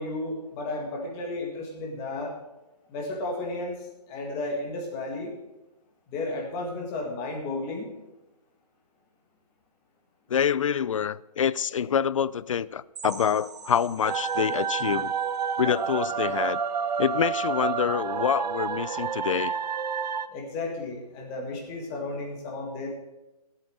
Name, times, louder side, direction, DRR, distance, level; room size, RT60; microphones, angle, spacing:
voice 1, 0.0-2.3 2.9-3.7 4.1-5.3 6.1-7.9 20.3-22.9, left 2 dB, 15° left, 1.7 m, -33 dB
voice 2, 10.3-15.1 15.6-16.6 17.0-19.5, left 8 dB, 55° left, 0.4 m, -26 dB
sound 1, 12.9-16.6 17.0-17.1 17.5-17.6 18.1-18.2, right 4 dB, 45° right, 1.8 m, -46 dB
sound 2, 14.0-20.3, right 6 dB, 90° right, 0.7 m, -29 dB
13.5 x 8.2 x 6.4 m
hypercardioid pair, 175°, 20 cm